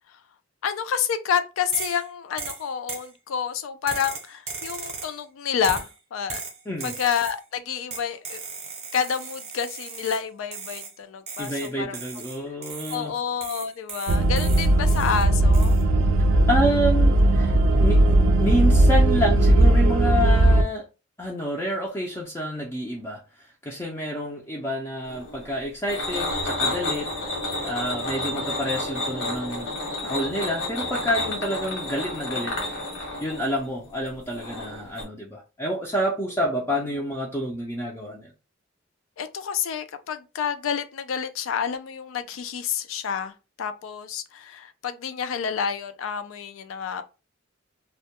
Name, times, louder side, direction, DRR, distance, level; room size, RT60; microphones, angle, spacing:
voice 1, 0.6-6.4 6.8-8.4 8.9-12.0 12.9-15.7 39.2-47.0, left 7 dB, 80° left, 0.3 m, -29 dB
sound 1, 1.7-2.1 2.4-3.1 3.9-5.2 5.6-5.9 6.3-7.4 7.9-10.2 10.5-11.0 11.3-13.1 13.4-15.2 15.5-15.8, right 5 dB, 35° right, 0.7 m, -37 dB
voice 2, 11.4-13.1 16.5-17.5 17.8-20.8 21.2-27.1 27.6-29.8 30.0-32.6 33.2-38.3, equal, 15° left, 0.4 m, -28 dB
sound 2, 14.1-20.6, right 1 dB, 85° right, 0.3 m, -18 dB
sound 3, 25.1-35.0, left 2 dB, 65° left, 1.0 m, -30 dB
2.1 x 2.1 x 2.8 m
head